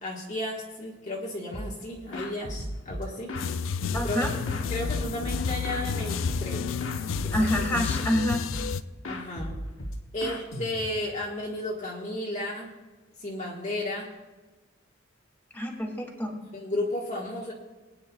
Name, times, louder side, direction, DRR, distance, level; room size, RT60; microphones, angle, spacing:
voice 1, 0.0-3.3 3.9-4.4 4.7-6.7 7.2-7.8 9.0-9.5 10.1-12.7 13.2-14.1 16.5-17.5, left 1 dB, 35° left, -4 dB, 1.5 m, -33 dB
sound 1, 1.5-1.8 2.1-3.5 3.9-5.9 6.2-6.6 6.8-8.1 8.5-8.8 9.0-11.1, equal, 85° left, 1.4 m, -36 dB
sound 2, 3.4-8.8, left 6 dB, 70° left, 0.4 m, -31 dB
voice 2, 3.9-4.3 7.3-8.4 15.5-16.4, equal, 10° left, -1 dB, 2.4 m, -27 dB
21.5 x 9.7 x 2.3 m, 1.3 s
head